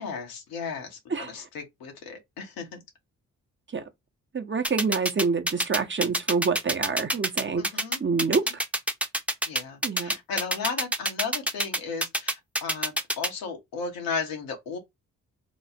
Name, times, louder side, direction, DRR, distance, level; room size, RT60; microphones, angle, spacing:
voice 1, 0.0-2.8 7.6-8.0 9.5-14.8, left 5 dB, 90° left, 1.0 m, -35 dB
voice 2, 4.3-7.6 8.0-8.4 9.8-10.2, right 5 dB, 35° right, 0.9 m, -27 dB
sound 1, 4.6-13.3, right 1 dB, 5° right, 0.7 m, -26 dB
3.1 x 2.1 x 4.1 m
supercardioid pair, 40°, 34 cm